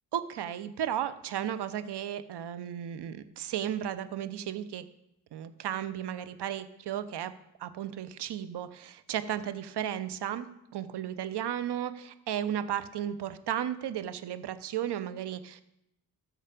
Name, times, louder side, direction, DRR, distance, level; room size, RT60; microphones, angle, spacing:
voice 1, 0.1-4.8 5.3-7.3 7.6-10.5 10.7-15.6, right 10 dB, 65° right, 13 dB, 1.0 m, -34 dB
13.5 x 6.5 x 5.1 m, 0.82 s
hypercardioid pair, 45°, 43 cm